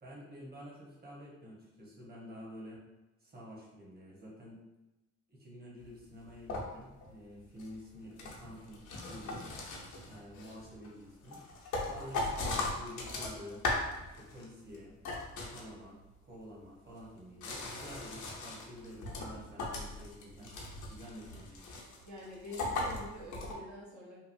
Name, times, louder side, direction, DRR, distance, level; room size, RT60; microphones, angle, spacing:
voice 1, 0.0-2.8 3.2-4.6 5.3-9.5 10.0-11.4 11.8-13.6 14.1-15.0 15.4-16.0 16.3-20.5 20.9-21.6, equal, 30° right, -4 dB, 1.1 m, -49 dB
sound 1, 5.9-6.0 6.3-7.1 7.6-14.4 14.7-16.0 16.9-23.5, left 2 dB, 80° left, 0.7 m, -39 dB
voice 2, 22.0-24.2, left 1 dB, 65° right, -5 dB, 0.8 m, -46 dB
3.0 x 2.3 x 2.6 m, 1.0 s
cardioid pair, 90°, 30 cm